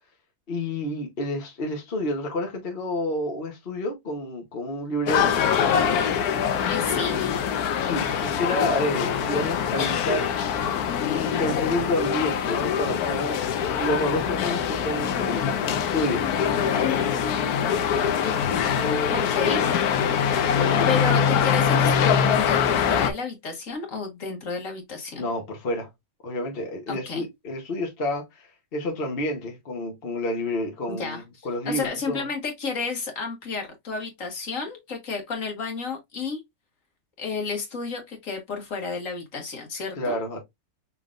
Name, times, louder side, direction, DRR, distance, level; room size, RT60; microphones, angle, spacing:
voice 1, 0.5-5.3 7.8-10.3 10.7-13.5 13.8-16.7 25.2-25.9 26.2-32.2 40.0-40.4, left 1 dB, 40° left, 1.2 m, -29 dB
sound 1, 5.1-23.1, left 7 dB, 80° left, 1.2 m, -23 dB
voice 2, 6.7-7.2 19.1-19.8 20.7-25.2 26.9-27.2 30.9-36.4 37.2-40.2, left 4 dB, 60° left, 1.7 m, -31 dB
5.7 x 3.5 x 2.5 m
omnidirectional pair, 1.6 m